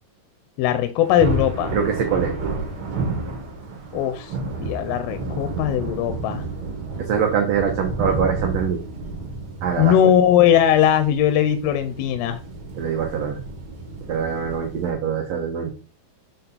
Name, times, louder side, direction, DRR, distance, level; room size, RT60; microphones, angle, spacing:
voice 1, 0.6-1.7 3.9-4.3 4.6-6.4 9.8-12.4, left 10 dB, 85° left, 9 dB, 2.4 m, -19 dB
Thunder, 1.0-14.9, right 3 dB, 55° right, 1.8 m, -31 dB
voice 2, 1.7-2.3 7.0-8.8 9.6-10.1 12.8-13.4 14.1-15.7, right 7 dB, 80° right, 2 dB, 1.5 m, -23 dB
6.8 x 4.1 x 4.1 m, 0.36 s
omnidirectional pair, 4.3 m